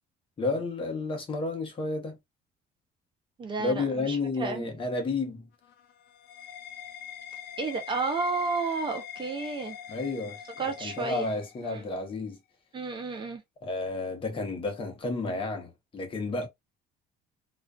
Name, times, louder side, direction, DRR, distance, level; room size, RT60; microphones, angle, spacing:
voice 1, 0.4-2.2 3.6-5.5 9.9-10.4 10.8-12.4 13.6-16.5, left 3 dB, 30° left, 0.8 m, -31 dB
voice 2, 3.4-4.7 7.6-9.8 10.6-11.3 11.6-11.8 12.7-13.4, right 4 dB, 30° right, 0.5 m, -32 dB
sound 1, 5.5-12.0, left 9 dB, 65° left, 0.5 m, -43 dB
2.3 x 2.3 x 2.2 m
cardioid pair, 135°, 17 cm